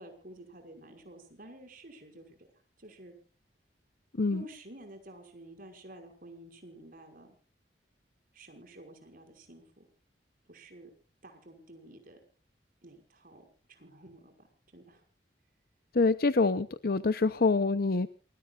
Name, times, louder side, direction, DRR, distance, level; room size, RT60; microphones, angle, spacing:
voice 1, 0.0-2.5 2.8-3.1 4.3-7.4 8.3-9.8 10.5-10.9 11.2-12.2 12.8-14.5 14.7-15.0, right 1 dB, 55° right, 5 dB, 5.6 m, -51 dB
voice 2, 15.9-18.1, left 3 dB, 60° left, 12 dB, 0.7 m, -26 dB
28.0 x 21.0 x 2.5 m, 0.39 s
head